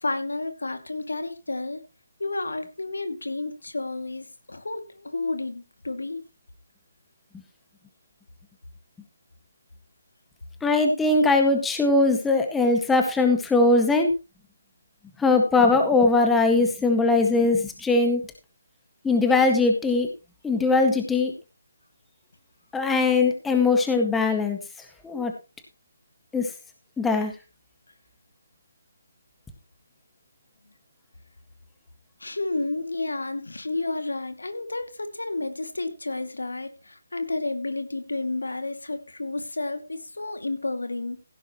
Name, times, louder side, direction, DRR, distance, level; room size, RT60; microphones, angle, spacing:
voice 1, 0.0-1.8 2.2-6.2 32.2-41.2, left 2 dB, 80° left, 8 dB, 2.5 m, -31 dB
voice 2, 10.6-14.1 15.2-18.2 19.0-20.1 20.4-21.3 22.7-24.6 25.0-25.3 26.3-26.5 27.0-27.3, left 3 dB, 5° left, 5 dB, 1.8 m, -20 dB
16.0 x 10.5 x 3.1 m, 0.29 s
figure-of-eight pair, 150°, 0 cm